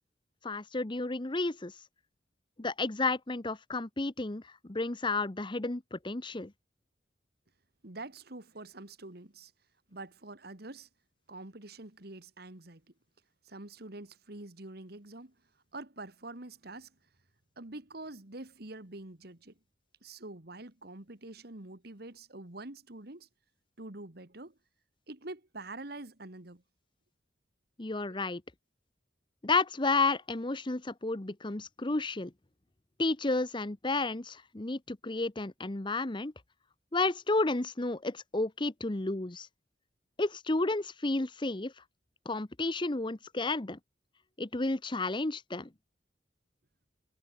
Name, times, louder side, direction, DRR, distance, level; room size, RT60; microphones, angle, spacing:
voice 1, 0.4-1.7 2.6-6.5 27.8-28.4 29.4-32.3 33.0-36.3 36.9-39.5 40.2-41.7 42.2-43.8 44.4-45.7, left 3 dB, 25° left, 0.9 m, -31 dB
voice 2, 7.8-9.5 9.9-10.9 11.3-12.8 13.4-15.3 15.7-16.9 17.6-19.5 20.0-23.3 23.8-24.6 25.1-26.6 28.1-28.4, right 2 dB, 60° right, 2.1 m, -46 dB
head